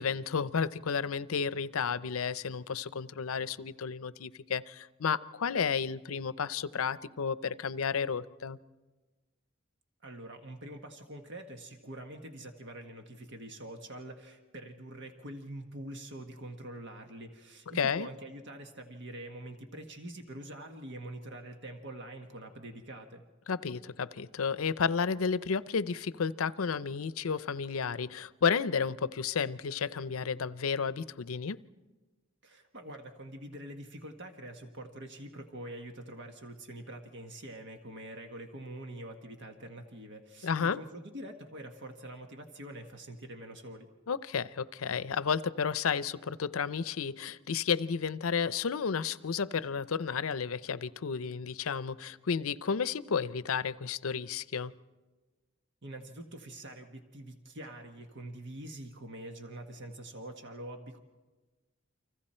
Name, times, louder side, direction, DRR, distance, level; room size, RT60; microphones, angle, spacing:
voice 1, 0.0-8.6 17.8-18.1 23.5-31.6 40.4-40.8 44.1-54.7, left 6 dB, 90° left, 16 dB, 0.6 m, -32 dB
voice 2, 10.0-23.3 32.4-43.9 55.8-61.0, right 1 dB, 55° right, 5 dB, 1.4 m, -45 dB
30.0 x 25.0 x 4.4 m, 1.3 s
head